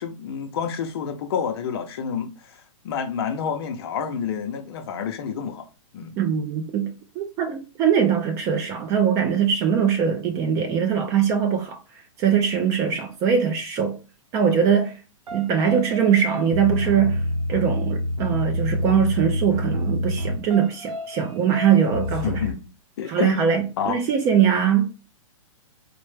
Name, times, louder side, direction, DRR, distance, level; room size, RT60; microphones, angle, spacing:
voice 1, 0.0-2.6 2.8-5.7 5.9-6.2 22.2-22.6 23.0-23.3 23.8-24.0, left 7 dB, 50° left, 0.6 m, -29 dB
voice 2, 6.2-6.9 7.2-11.8 12.2-14.0 14.3-15.0 15.3-17.2 17.5-22.4 23.1-24.9, right 8 dB, 20° right, 0.4 m, -21 dB
sound 1, 15.3-22.5, left 1 dB, 90° right, 1.0 m, -28 dB
4.3 x 2.1 x 3.2 m
hypercardioid pair, 155°, 17 cm